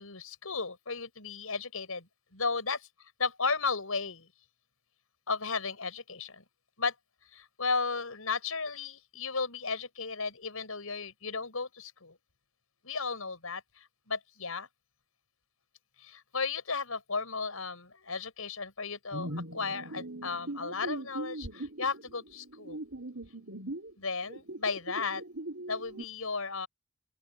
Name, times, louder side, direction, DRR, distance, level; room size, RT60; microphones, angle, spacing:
voice 1, 0.0-2.8 3.2-4.3 5.3-6.4 6.8-6.9 7.3-12.2 12.8-14.7 16.0-22.8 24.0-25.2 25.7-26.7, left 4 dB, 85° left, 5.9 m, -34 dB
sound 1, 19.1-23.9 24.3-26.0, right 1 dB, 65° right, 5.4 m, -40 dB
open air
head